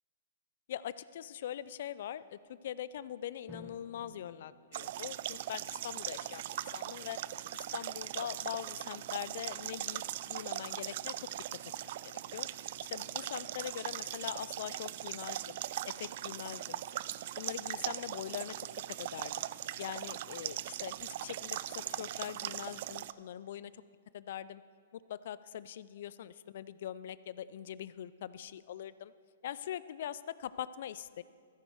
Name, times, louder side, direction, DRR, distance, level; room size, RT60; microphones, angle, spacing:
voice 1, 0.7-7.2 7.5-11.2 11.8-12.5 12.9-15.6 16.0-16.8 17.4-18.5 19.0-19.5 19.8-23.7 24.1-24.6 24.9-29.1 29.4-31.2, left 11 dB, 60° left, 17 dB, 0.4 m, -42 dB
Drum, 3.5-6.0, left 2 dB, ahead, 1.3 m, -56 dB
sound 1, 4.7-23.1, right 13 dB, 55° right, 0.3 m, -40 dB
14.0 x 9.1 x 4.6 m, 2.2 s
hypercardioid pair, 125°, 0 cm